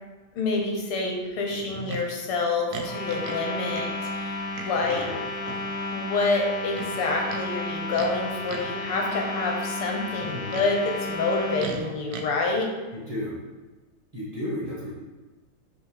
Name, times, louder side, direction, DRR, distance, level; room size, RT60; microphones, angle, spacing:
voice 1, 0.4-5.1 5.9-12.7, left 3 dB, 85° left, 1 dB, 2.0 m, -27 dB
voice 2, 1.5-1.9 4.8-5.2 10.2-10.6 12.9-13.4 14.1-14.9, left 1 dB, 20° right, -8 dB, 1.4 m, -34 dB
Livestock farm animals working animals, 1.9-2.1 2.7-3.4 3.7-3.9 4.5-5.1 5.4-5.7 6.7-7.4 7.9-8.1 8.5-8.8 10.1-10.7 11.6-12.3, right 5 dB, 75° right, 0.8 m, -38 dB
sound 1, 2.8-11.6, left 2 dB, 55° left, 3.0 m, -33 dB
6.8 x 3.6 x 5.0 m, 1.2 s
omnidirectional pair, 2.4 m